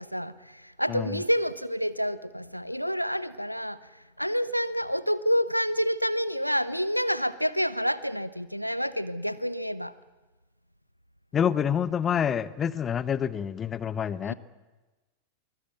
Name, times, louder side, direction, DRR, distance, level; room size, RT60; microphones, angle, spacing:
voice 1, 0.0-3.8 4.2-9.9 14.2-14.3, equal, 90° left, 17 dB, 0.9 m, -28 dB
voice 2, 0.9-1.2 11.3-14.3, left 8 dB, 25° left, 17 dB, 1.0 m, -27 dB
24.0 x 21.0 x 9.3 m, 1.2 s
figure-of-eight pair, 90°, 0 cm